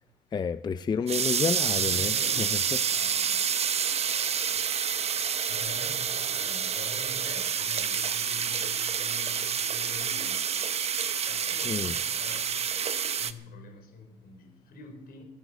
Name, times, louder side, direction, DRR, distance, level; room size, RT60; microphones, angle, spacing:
voice 1, 0.3-2.8 11.6-12.0, left 6 dB, 25° left, 13 dB, 0.4 m, -30 dB
sound 1, 1.1-13.3, right 7 dB, 40° right, 0.9 m, -28 dB
voice 2, 1.7-3.5 4.5-4.6 5.5-12.7 13.2-15.2, left 3 dB, 65° left, 5 dB, 4.8 m, -46 dB
15.5 x 10.5 x 8.1 m, 0.88 s
cardioid pair, 110°, 17 cm